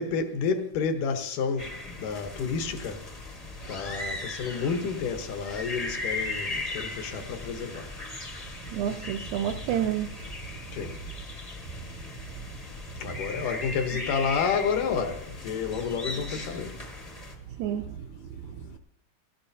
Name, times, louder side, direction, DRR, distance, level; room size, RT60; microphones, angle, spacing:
voice 1, 0.0-1.7 2.0-3.0 3.7-7.9 10.7-11.0 13.0-16.8, left 6 dB, 85° left, 2.7 m, -30 dB
sound 1, 1.6-17.3, left 2 dB, 50° left, 0.4 m, -38 dB
voice 2, 8.7-10.1 17.6-18.0 18.5-18.8, right 10 dB, 75° right, 1.9 m, -29 dB
18.0 x 16.0 x 2.7 m
omnidirectional pair, 3.6 m